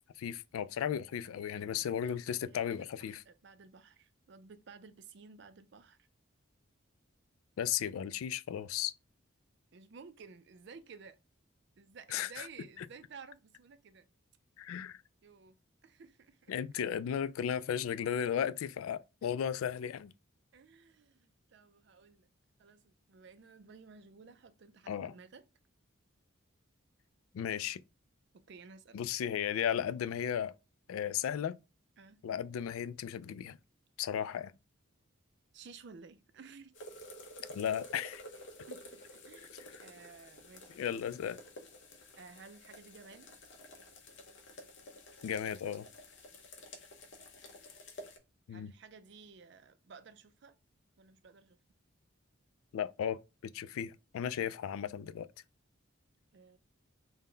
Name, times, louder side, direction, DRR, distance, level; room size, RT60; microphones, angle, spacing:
voice 1, 0.2-3.2 7.6-8.9 12.1-12.5 14.6-15.0 16.5-20.1 24.9-25.1 27.3-27.8 28.9-30.5 30.9-31.6 32.2-33.6 34.0-34.5 37.5-38.2 40.8-41.4 45.2-45.9 48.5-48.7 52.7-55.3, left 9 dB, 85° left, 0.3 m, -35 dB
voice 2, 1.6-2.9 3.3-6.1 9.7-11.2 11.8-14.1 15.2-15.6 15.8-16.5 20.5-22.3 22.6-25.5 28.3-29.0 32.0-32.2 35.5-36.8 38.7-41.1 42.2-43.3 48.5-50.5 51.0-51.6 56.3-56.6, right 5 dB, 55° right, 0.4 m, -54 dB
sound 1, 36.7-48.2, left 1 dB, 55° left, 0.8 m, -51 dB
3.7 x 2.2 x 3.8 m
head